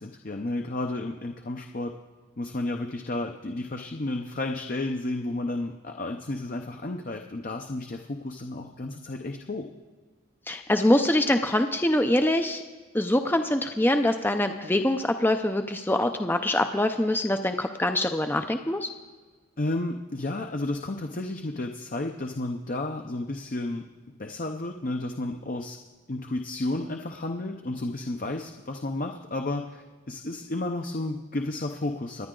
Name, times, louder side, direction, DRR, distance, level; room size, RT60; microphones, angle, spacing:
voice 1, 0.0-1.9 2.4-9.7 19.6-23.8 24.2-25.8 26.1-32.3, left 2 dB, 45° left, 4 dB, 0.7 m, -32 dB
voice 2, 10.5-12.6 12.9-18.9, left 1 dB, 10° left, 7 dB, 0.5 m, -24 dB
26.0 x 10.0 x 3.8 m, 1.3 s
head